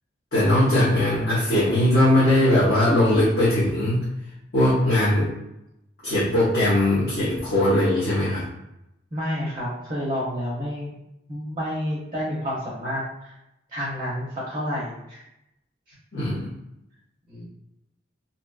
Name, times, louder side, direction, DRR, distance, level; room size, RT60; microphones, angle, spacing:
voice 1, 0.3-4.1 4.5-5.3 6.0-8.5 16.1-16.5, left 1 dB, 55° left, -10 dB, 0.8 m, -20 dB
voice 2, 9.1-10.9 11.3-13.3 13.7-15.2 17.3-17.5, equal, 25° right, -6 dB, 0.6 m, -29 dB
2.7 x 2.3 x 2.3 m, 0.86 s
head